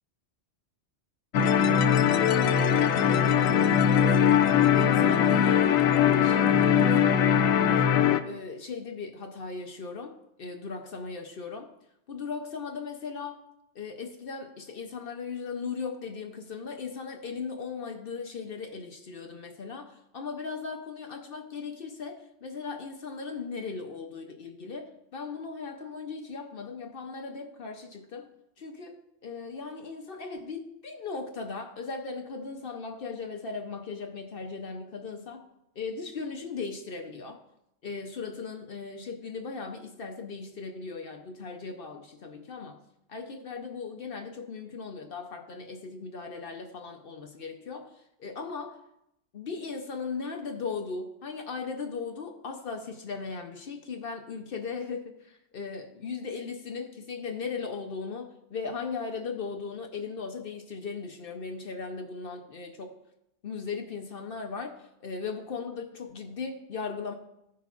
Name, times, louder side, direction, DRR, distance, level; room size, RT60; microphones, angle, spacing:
sound 1, 1.3-8.2, left 8 dB, 90° left, 1.0 m, -21 dB
voice 1, 2.3-7.4 7.6-7.9 8.2-11.7 12.1-13.4 13.7-28.3 28.6-35.5 35.8-37.4 37.8-42.8 43.1-47.9 48.2-48.8 49.3-63.0 63.4-67.1, left 4 dB, 55° left, 0.8 m, -38 dB
15.0 x 5.9 x 2.4 m
omnidirectional pair, 1.3 m